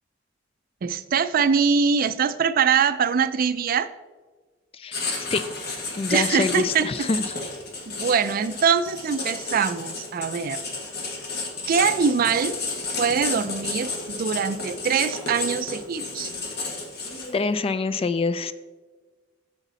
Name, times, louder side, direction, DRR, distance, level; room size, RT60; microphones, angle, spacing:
voice 1, 0.8-3.9 6.1-7.1 7.9-10.6 11.7-12.6 13.0-16.3, right 6 dB, 45° right, 13 dB, 0.4 m, -23 dB
Writing, 4.9-17.5, left 3 dB, 55° left, 1.6 m, -32 dB
voice 2, 6.0-7.2 17.3-18.5, left 4 dB, 30° left, 14 dB, 0.3 m, -25 dB
8.2 x 7.1 x 4.0 m, 1.3 s
head